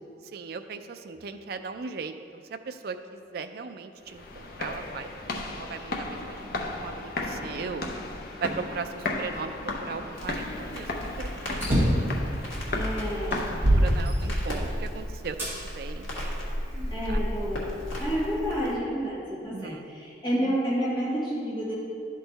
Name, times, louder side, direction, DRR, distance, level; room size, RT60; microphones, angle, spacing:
voice 1, 0.3-5.1 5.5-7.9 8.4-9.6 9.8-12.3 13.8-15.4 15.6-16.1 17.1-17.2 19.5-19.8, right 5 dB, 50° right, 8 dB, 0.3 m, -38 dB
sound 1, 4.0-14.1, left 2 dB, 50° left, 0.6 m, -35 dB
Crackle, 10.1-18.8, equal, 85° left, 1.6 m, -35 dB
sound 2, 11.6-12.1 12.8-12.9 13.3-14.7 15.4-15.5 16.3-17.3, equal, 10° right, 1.6 m, -24 dB
voice 2, 12.7-14.0 16.9-21.7, equal, 25° left, -7 dB, 1.3 m, -30 dB
11.0 x 3.8 x 4.0 m, 2.4 s
head